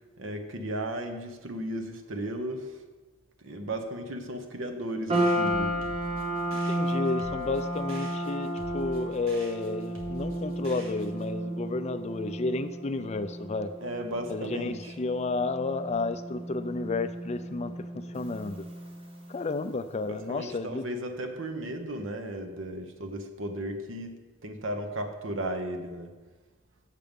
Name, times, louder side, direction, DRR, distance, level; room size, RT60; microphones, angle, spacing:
voice 1, 0.2-2.7 3.4-5.8 13.8-14.9 20.1-26.1, right 1 dB, 70° right, 6 dB, 0.9 m, -35 dB
sound 1, 5.1-19.5, right 1 dB, 30° right, 1.0 m, -33 dB
sound 2, 5.1-11.3, equal, 90° right, 1.6 m, -47 dB
voice 2, 6.5-13.7 14.3-18.7 19.3-20.8, left 3 dB, 35° left, 10 dB, 0.4 m, -32 dB
7.5 x 6.8 x 5.2 m, 1.3 s
head